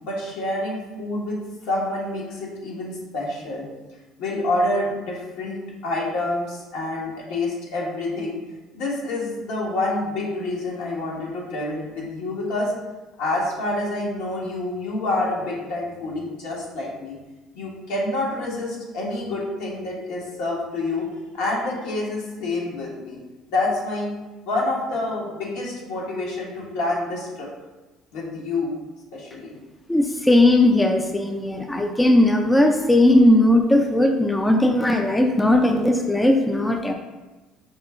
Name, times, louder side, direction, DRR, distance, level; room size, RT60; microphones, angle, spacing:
voice 1, 0.0-3.7 4.2-8.4 8.7-12.7 13.2-17.2 17.5-23.2 23.5-24.1 24.4-27.5 28.1-28.7 29.1-29.5, left 2 dB, 80° left, -4 dB, 1.3 m, -27 dB
voice 2, 29.9-36.9, left 1 dB, 10° left, 4 dB, 0.3 m, -18 dB
5.0 x 2.3 x 3.6 m, 1.2 s
supercardioid pair, 100°, 0 cm